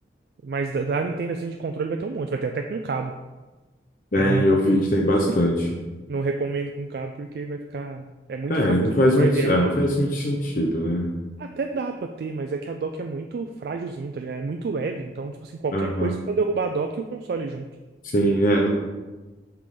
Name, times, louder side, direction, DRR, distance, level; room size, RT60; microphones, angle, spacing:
voice 1, 0.4-3.1 4.2-4.4 5.3-5.4 6.1-8.8 9.2-9.7 11.4-17.6, right 4 dB, 60° right, 4 dB, 0.3 m, -29 dB
voice 2, 4.1-5.5 8.5-11.1 15.7-16.1 18.1-18.7, equal, 50° left, -1 dB, 0.7 m, -21 dB
5.9 x 3.6 x 4.9 m, 1.2 s
head